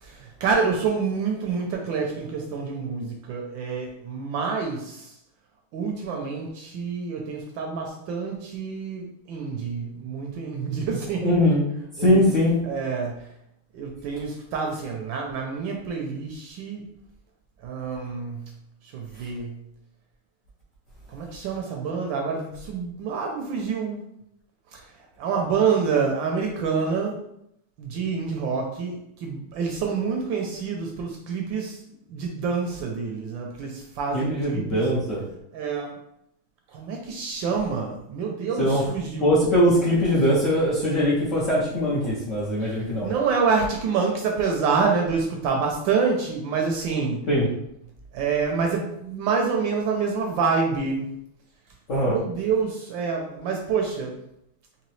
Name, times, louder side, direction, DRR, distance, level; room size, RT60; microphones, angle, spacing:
voice 1, 0.0-5.1 5.7-11.4 12.0-12.3 12.6-13.3 13.7-16.9 17.6-18.5 18.9-19.6 21.1-24.1 24.7-24.8 25.2-27.2 27.8-31.8 32.1-34.8 35.5-36.0 36.7-39.3 42.6-47.2 48.1-51.1 52.1-54.2, right 5 dB, 75° right, 1 dB, 1.2 m, -27 dB
voice 2, 11.2-11.6 12.0-12.6 34.1-35.3 38.6-38.8 39.2-43.1 47.3-47.5 51.9-52.1, equal, 60° left, -7 dB, 0.8 m, -21 dB
3.8 x 3.1 x 3.1 m, 0.76 s
omnidirectional pair, 2.4 m